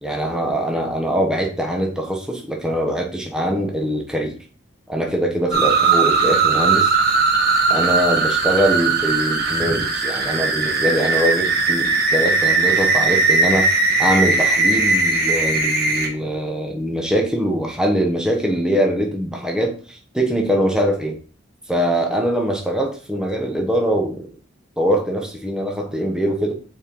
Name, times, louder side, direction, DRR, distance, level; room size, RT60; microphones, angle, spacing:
voice 1, 0.0-4.4 4.9-6.9 7.7-13.7 14.0-21.2 21.7-24.4 24.8-26.5, equal, 5° right, 0 dB, 1.2 m, -22 dB
sound 1, 5.5-16.1, right 4 dB, 50° right, 1.3 m, -18 dB
6.4 x 4.9 x 3.7 m, 0.39 s
head